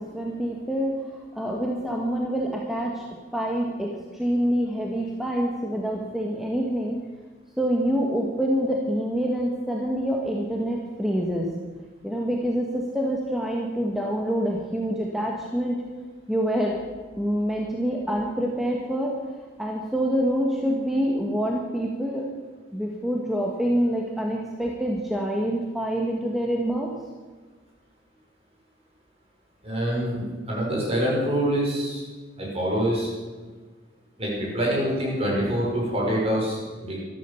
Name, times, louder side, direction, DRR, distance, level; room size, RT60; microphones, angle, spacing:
voice 1, 0.0-3.0 3.3-7.0 7.6-11.5 12.0-15.8 16.3-16.8 17.2-19.2 19.6-22.3 22.7-26.9, equal, ahead, -2 dB, 1.5 m, -26 dB
voice 2, 29.6-32.0 32.4-33.1 34.2-37.0, equal, 35° right, -4 dB, 6.0 m, -25 dB
13.0 x 13.0 x 7.0 m, 1.4 s
head